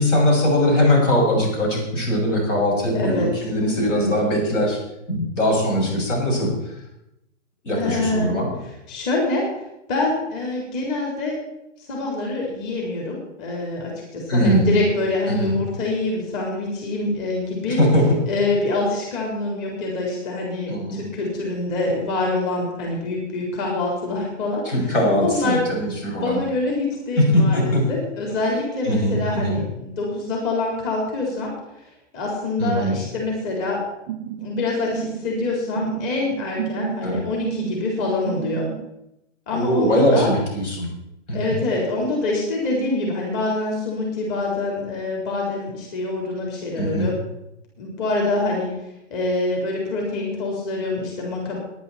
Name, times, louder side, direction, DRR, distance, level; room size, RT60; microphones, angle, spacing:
voice 1, 0.0-4.8 5.1-6.5 7.6-8.5 14.3-14.7 15.3-15.6 17.7-18.2 20.7-21.0 24.6-26.4 27.2-27.8 28.8-29.6 32.6-33.0 37.0-37.2 39.5-40.9 41.3-41.6 46.8-47.1, equal, 75° left, 0 dB, 6.6 m, -20 dB
voice 2, 2.9-3.3 3.6-4.2 7.7-8.3 8.9-11.4 11.8-17.8 18.3-25.6 26.0-31.5 32.1-33.8 34.4-38.7 39.5-40.3 41.3-47.1 47.8-48.7 49.1-51.6, left 2 dB, 40° left, -2 dB, 4.2 m, -25 dB
sound 1, 34.1-38.9, right 11 dB, 30° right, 0.4 m, -32 dB
18.5 x 10.5 x 4.3 m, 0.86 s
hypercardioid pair, 135°, 37 cm